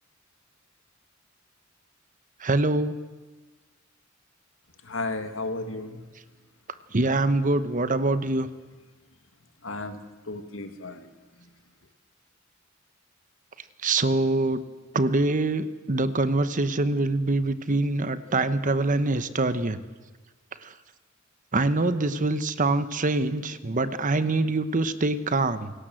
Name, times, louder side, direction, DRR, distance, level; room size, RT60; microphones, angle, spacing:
voice 1, 2.4-2.9 6.9-8.5 13.8-14.6 14.9-19.8 20.6-20.7 21.5-25.7, right 2 dB, 40° right, 12 dB, 1.1 m, -24 dB
voice 2, 4.8-6.0 9.6-11.1, left 2 dB, 75° left, 8 dB, 2.0 m, -34 dB
28.0 x 18.0 x 7.8 m, 1.3 s
head